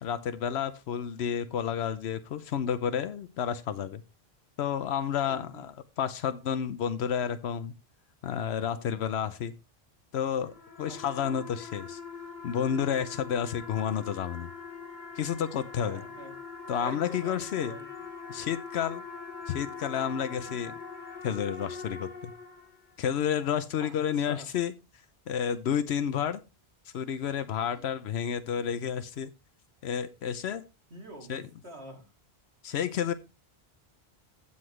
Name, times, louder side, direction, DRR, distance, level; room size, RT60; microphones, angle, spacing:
voice 1, 0.0-4.0 4.6-7.7 8.2-9.5 10.1-10.5 10.8-12.0 12.4-14.5 15.2-16.0 16.7-17.8 18.3-19.0 19.5-20.7 21.2-22.3 23.0-24.7 25.3-26.4 26.9-29.3 29.8-30.6 31.3-31.4 32.6-33.1, left 8 dB, 85° left, 12 dB, 0.9 m, -30 dB
voice 2, 5.2-5.7 10.9-11.0 15.8-16.3 16.8-17.9 20.5-20.6 23.8-23.9 24.3-24.5 30.9-32.1, right 1 dB, 80° right, 3 dB, 2.5 m, -45 dB
sound 1, 10.4-23.0, left 5 dB, 45° left, 1.5 m, -43 dB
15.5 x 5.7 x 3.1 m, 0.27 s
omnidirectional pair, 1.1 m